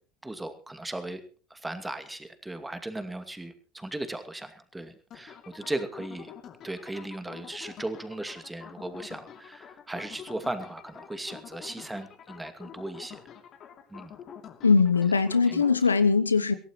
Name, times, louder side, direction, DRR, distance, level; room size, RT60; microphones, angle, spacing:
voice 1, 0.2-1.2 1.5-6.3 6.6-13.2 13.9-14.1 15.4-15.6, right 1 dB, 10° right, 9 dB, 2.4 m, -37 dB
sound 1, 5.1-15.8, left 8 dB, 45° left, 2.7 m, -47 dB
voice 2, 14.6-16.5, left 5 dB, 90° left, 12 dB, 0.8 m, -21 dB
23.0 x 17.0 x 3.1 m, 0.40 s
figure-of-eight pair, 70°, 0 cm